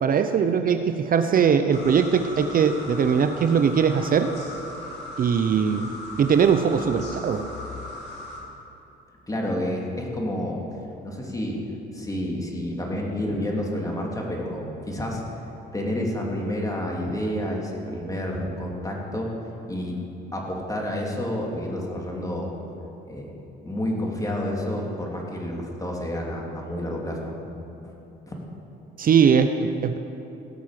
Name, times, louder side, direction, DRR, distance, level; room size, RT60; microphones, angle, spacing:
voice 1, 0.0-4.3 5.2-5.9 6.2-7.5 29.0-30.0, right 7 dB, 45° right, 8 dB, 0.7 m, -20 dB
sound 1, 1.7-8.4, left 2 dB, 60° left, 2.9 m, -38 dB
voice 2, 9.3-10.6 11.0-11.6 11.9-15.2 15.7-19.3 19.7-20.0 20.3-22.5 23.0-23.4 23.6-27.4 27.8-27.9 28.3-28.4, left 1 dB, 15° left, -1 dB, 2.9 m, -29 dB
17.5 x 6.1 x 7.6 m, 3.0 s
supercardioid pair, 75°, 20 cm